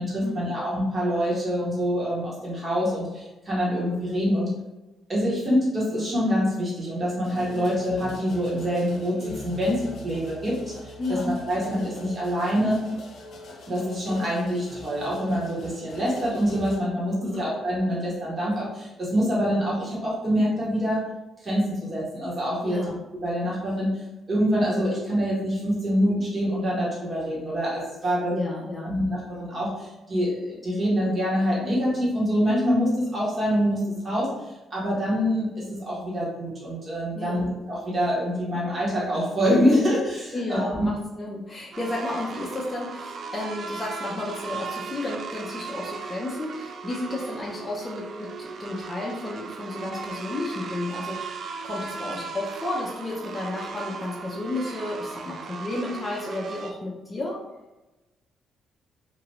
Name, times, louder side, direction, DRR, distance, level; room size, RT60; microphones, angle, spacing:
voice 1, 0.0-4.5 5.1-9.2 9.4-12.8 13.7-21.0 21.4-22.8 23.2-23.9 24.3-28.3 28.8-40.9, equal, 35° right, -7 dB, 1.3 m, -25 dB
sound 1, 7.2-16.8, left 1 dB, 70° left, 0.6 m, -41 dB
voice 2, 22.6-23.0 28.3-29.0 37.1-37.5 40.3-57.4, left 2 dB, 20° left, -4 dB, 0.5 m, -32 dB
sound 2, 41.7-56.7, right 5 dB, 55° right, 0.3 m, -37 dB
2.9 x 2.5 x 3.0 m, 1.1 s
cardioid pair, 90°, 0 cm